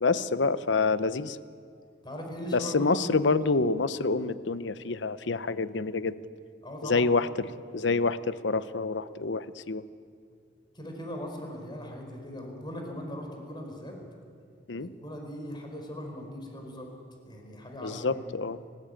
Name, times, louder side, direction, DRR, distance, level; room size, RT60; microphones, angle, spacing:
voice 1, 0.0-1.4 2.5-6.1 6.8-7.3 7.7-9.8 14.7-14.9 17.8-18.6, left 3 dB, 70° left, 14 dB, 0.8 m, -27 dB
voice 2, 2.0-3.4 3.9-4.2 6.6-7.1 10.7-14.0 14.8-16.9 17.2-18.2, equal, 25° left, 2 dB, 4.7 m, -39 dB
30.0 x 13.5 x 9.0 m, 2.3 s
head